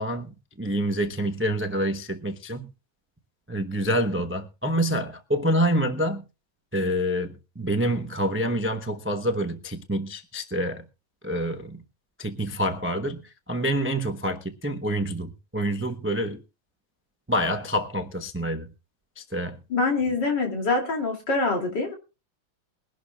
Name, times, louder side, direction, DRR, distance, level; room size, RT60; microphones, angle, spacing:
voice 1, 0.0-2.7 3.5-6.2 6.7-10.8 11.2-11.8 12.2-16.4 17.3-18.7 19.2-19.6, equal, 15° right, 0.4 m, -27 dB
voice 2, 19.7-21.9, left 3 dB, 60° left, 3.4 m, -25 dB
22.5 x 11.5 x 2.4 m
omnidirectional pair, 2.2 m